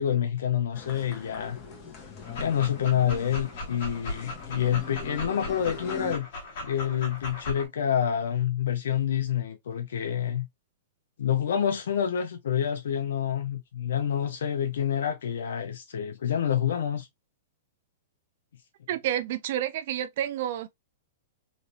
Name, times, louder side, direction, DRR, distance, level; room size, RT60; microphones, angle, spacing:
voice 1, 0.0-1.6 2.4-6.3 6.6-10.5 11.2-17.1, left 9 dB, 80° left, 0.8 m, -27 dB
sound 1, 0.7-6.2, left 4 dB, 30° left, 1.1 m, -42 dB
Dog, 2.2-7.7, left 2 dB, 55° left, 1.6 m, -38 dB
voice 2, 18.9-20.7, right 11 dB, 55° right, 0.4 m, -29 dB
3.2 x 2.6 x 2.7 m
hypercardioid pair, 155°, 0 cm